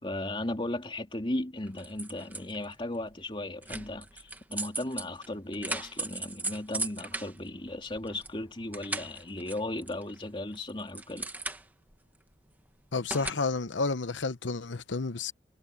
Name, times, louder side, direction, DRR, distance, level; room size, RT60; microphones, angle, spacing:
voice 1, 0.0-11.3, left 1 dB, 30° left, 3.1 m, -36 dB
sound 1, 1.7-2.7 3.6-8.3 8.6-10.2 10.5-11.9 13.1-13.3, right 2 dB, 10° right, 1.2 m, -37 dB
voice 2, 12.9-15.3, left 3 dB, 85° left, 0.9 m, -31 dB
head